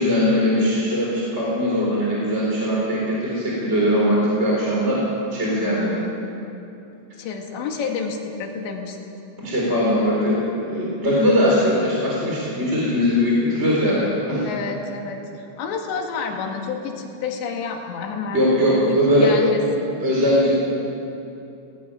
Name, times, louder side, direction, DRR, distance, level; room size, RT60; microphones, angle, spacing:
voice 1, 0.0-5.0 5.3-5.9 9.4-14.5 18.3-19.4 20.0-20.5, equal, 15° right, -4 dB, 3.7 m, -20 dB
voice 2, 5.5-6.2 7.2-9.0 14.4-15.2 15.6-19.9, left 5 dB, 70° left, 2 dB, 4.0 m, -29 dB
18.5 x 18.0 x 9.0 m, 2.8 s
omnidirectional pair, 5.6 m